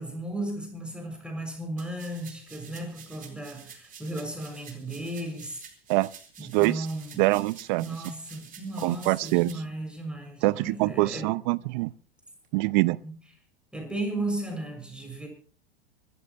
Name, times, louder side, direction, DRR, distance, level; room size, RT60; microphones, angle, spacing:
voice 1, 0.0-5.6 6.4-7.2 7.8-11.3 13.0-13.1 13.7-15.3, right 1 dB, 5° right, 6.4 m, -35 dB
sound 1, 1.8-9.5, right 7 dB, 30° right, 4.3 m, -49 dB
voice 2, 6.5-6.9 7.2-7.9 8.8-9.6 10.4-11.9 12.5-13.0, right 22 dB, 55° right, 0.7 m, -24 dB
25.5 x 13.5 x 3.1 m
hypercardioid pair, 90°, 29 cm